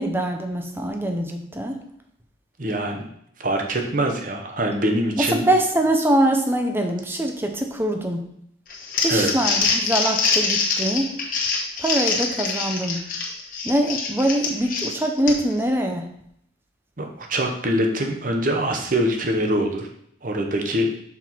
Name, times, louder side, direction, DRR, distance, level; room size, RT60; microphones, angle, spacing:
voice 1, 0.0-1.8 5.2-8.3 9.0-11.2 11.8-13.1 13.6-16.1, right 1 dB, 10° right, 4 dB, 0.7 m, -23 dB
voice 2, 2.6-3.0 3.4-5.4 9.1-9.3 17.0-19.9 20.2-20.9, right 1 dB, 45° right, 3 dB, 0.9 m, -23 dB
Crumpling crinkling, 8.7-15.6, left 4 dB, 45° left, 1.2 m, -24 dB
6.0 x 4.4 x 4.5 m, 0.71 s
head